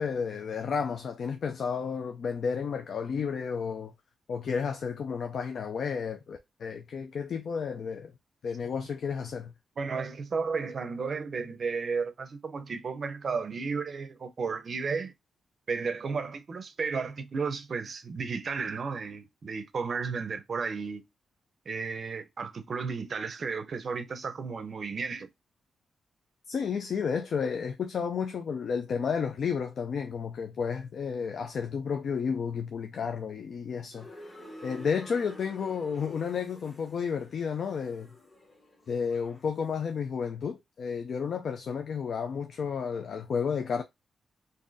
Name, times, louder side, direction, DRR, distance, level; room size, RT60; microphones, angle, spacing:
voice 1, 0.0-3.9 4.3-8.1 8.4-9.5 26.5-34.3 34.6-38.1 38.9-43.8, left 6 dB, 60° left, 0.4 m, -32 dB
voice 2, 9.8-15.1 15.7-21.0 21.7-25.3, right 5 dB, 45° right, 0.5 m, -33 dB
sound 1, 33.9-39.8, left 1 dB, 25° left, 1.0 m, -50 dB
3.9 x 2.6 x 2.5 m
wide cardioid pair, 130°, 0 cm